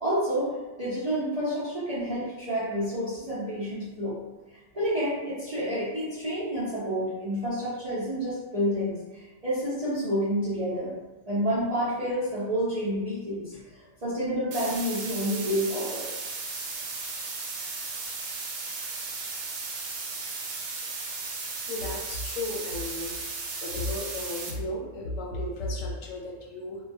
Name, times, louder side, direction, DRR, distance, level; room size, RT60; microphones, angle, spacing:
voice 1, 0.0-4.2 4.5-10.9 11.3-16.1, equal, 45° right, -12 dB, 0.4 m, -29 dB
sound 1, 14.5-24.5, right 4 dB, 80° right, 1.0 m, -35 dB
voice 2, 21.7-23.1 23.6-26.8, left 1 dB, 75° left, -2 dB, 0.9 m, -34 dB
2.2 x 2.2 x 2.5 m, 1.2 s
omnidirectional pair, 1.4 m